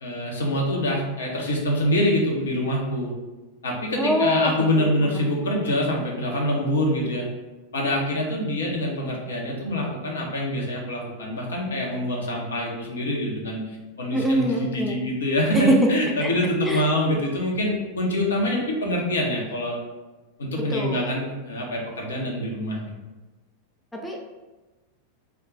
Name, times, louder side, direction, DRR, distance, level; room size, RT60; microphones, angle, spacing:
voice 1, 0.0-3.1 3.6-7.3 7.7-13.6 14.0-19.8 20.4-22.9, left 1 dB, 65° left, -2 dB, 0.7 m, -25 dB
voice 2, 4.0-5.2 14.1-15.0 15.5-15.9 16.2-16.3 16.6-16.9 20.7-21.1 23.9-24.2, equal, 5° left, -1 dB, 0.4 m, -24 dB
2.3 x 2.2 x 3.7 m, 1.2 s
figure-of-eight pair, 90°, 0 cm